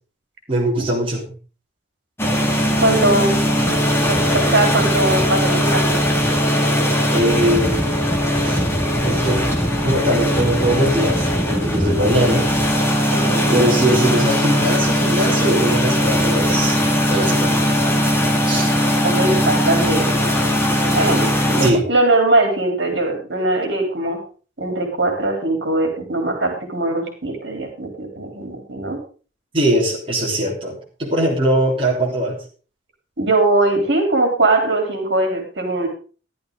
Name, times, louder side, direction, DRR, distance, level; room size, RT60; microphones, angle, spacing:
voice 1, 0.5-1.3 7.1-8.1 8.4-8.7 9.0-9.4 9.8-12.5 13.5-16.8 17.1-17.7 18.4-18.8 21.6-21.8 29.5-32.4, right 1 dB, 30° right, -3 dB, 3.3 m, -21 dB
sound 1, 2.2-21.7, equal, 15° left, 2.1 m, -19 dB
voice 2, 2.8-3.4 4.1-5.8 13.1-13.6 19.0-20.1 20.9-24.2 24.6-29.0 33.2-35.9, right 2 dB, 65° right, 3 dB, 3.6 m, -20 dB
14.0 x 11.5 x 3.9 m, 0.37 s
head